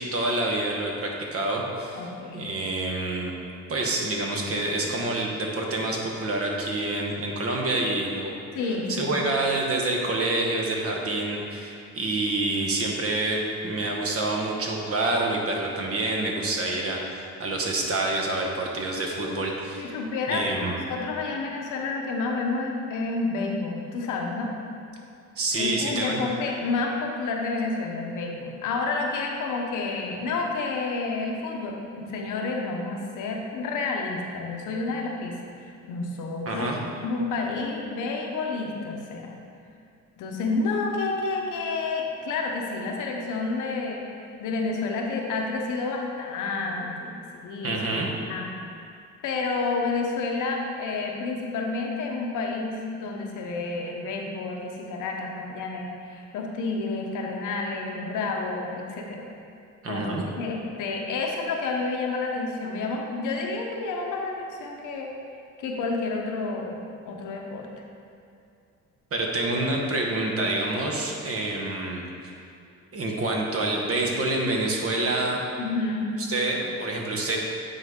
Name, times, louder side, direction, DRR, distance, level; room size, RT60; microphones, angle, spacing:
voice 1, 0.0-2.0 2.3-3.3 3.7-8.3 8.6-20.0 20.3-20.7 25.4-26.2 36.5-36.8 47.6-48.1 59.8-60.2 69.1-72.0 72.9-75.4 76.2-77.4, right 2 dB, 50° right, 0 dB, 1.1 m, -27 dB
voice 2, 1.9-2.5 8.5-9.1 19.8-24.5 25.5-35.4 35.9-39.3 40.2-44.0 44.4-47.8 48.3-48.5 49.2-59.2 59.9-65.1 65.6-66.8 67.1-67.7 75.6-76.1, left 3 dB, 85° left, 0 dB, 0.9 m, -30 dB
8.9 x 3.9 x 3.6 m, 2.4 s
cardioid pair, 90°, 30 cm